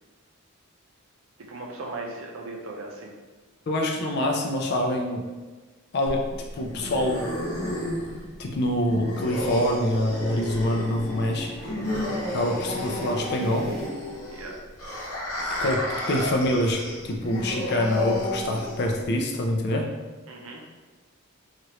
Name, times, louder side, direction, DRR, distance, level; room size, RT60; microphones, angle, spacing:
voice 1, 1.5-3.1 14.3-14.6 20.3-20.6, right 2 dB, 65° right, 0 dB, 0.5 m, -37 dB
voice 2, 3.7-5.2 5.9-6.3 6.6-7.3 8.4-11.5 12.3-13.7 15.6-16.8 17.1-19.9, left 1 dB, 50° left, 2 dB, 0.4 m, -25 dB
sound 1, 6.1-19.1, left 1 dB, 80° left, 0.8 m, -32 dB
sound 2, 8.3-14.7, equal, ahead, 0.7 m, -42 dB
3.0 x 2.5 x 2.9 m, 1.3 s
head